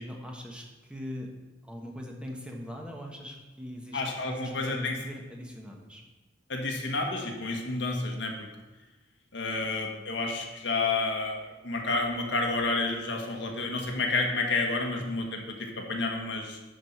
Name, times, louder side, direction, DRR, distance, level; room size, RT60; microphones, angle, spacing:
voice 1, 0.0-1.3 1.6-4.0 4.3-6.0 14.9-15.0, left 1 dB, 5° right, 0 dB, 1.2 m, -41 dB
voice 2, 3.9-4.9 6.5-8.5 9.3-16.6, left 3 dB, 70° left, 2 dB, 1.5 m, -30 dB
10.5 x 4.8 x 5.9 m, 1.2 s
head